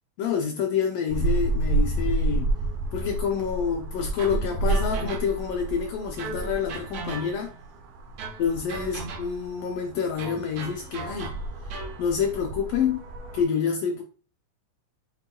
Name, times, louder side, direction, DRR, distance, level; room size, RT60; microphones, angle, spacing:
voice 1, 0.2-2.5 2.9-7.5 8.4-11.3 12.0-13.0 13.3-14.0, left 7 dB, 85° left, 1.4 m, -27 dB
sound 1, 1.1-13.4, right 2 dB, 65° right, 1.7 m, -30 dB
sound 2, 4.2-5.6 6.2-7.6 8.2-9.5 10.2-12.0, right 4 dB, 85° right, 1.2 m, -38 dB
7.4 x 3.0 x 2.2 m
omnidirectional pair, 3.5 m